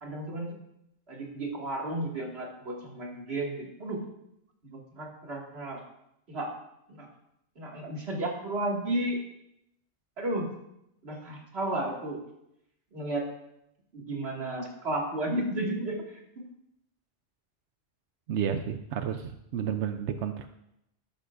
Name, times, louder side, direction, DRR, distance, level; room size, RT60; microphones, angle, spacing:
voice 1, 0.0-0.5 1.1-4.0 4.7-5.8 6.3-6.5 6.9-7.1 7.6-9.2 10.2-10.5 11.0-12.2 12.9-13.2 13.9-16.0, right 1 dB, 65° right, -2 dB, 2.4 m, -33 dB
voice 2, 18.3-20.5, right 8 dB, 80° right, 8 dB, 0.9 m, -31 dB
13.0 x 12.0 x 2.5 m, 0.81 s
omnidirectional pair, 1.2 m